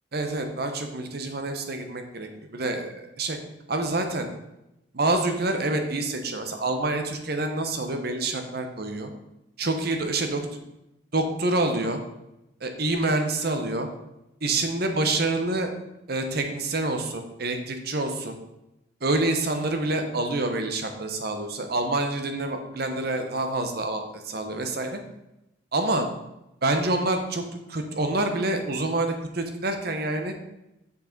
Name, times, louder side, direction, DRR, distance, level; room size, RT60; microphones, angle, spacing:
voice 1, 0.1-3.4 3.7-4.3 4.9-9.1 9.6-10.6 11.1-12.0 12.6-13.9 14.4-15.7 16.1-18.4 19.0-25.0 25.7-26.1 26.6-27.4 27.7-30.3, right 2 dB, 55° right, 6 dB, 1.0 m, -27 dB
6.6 x 5.3 x 5.3 m, 0.90 s
head